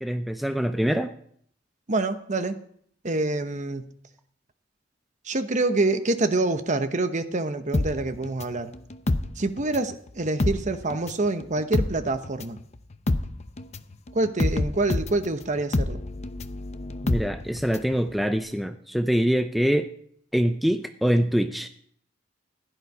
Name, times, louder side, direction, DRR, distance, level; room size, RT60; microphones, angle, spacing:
voice 1, 0.0-1.1 17.0-19.9 20.3-21.7, equal, ahead, 7 dB, 0.5 m, -24 dB
voice 2, 1.9-2.6 3.0-3.9 5.2-8.7 9.4-12.6 14.1-16.0, right 2 dB, 40° right, 10 dB, 1.0 m, -26 dB
sound 1, 7.7-10.0 10.2-17.9 18.2-18.3, left 2 dB, 35° left, 0.7 m, -28 dB
16.0 x 11.0 x 4.9 m, 0.64 s
head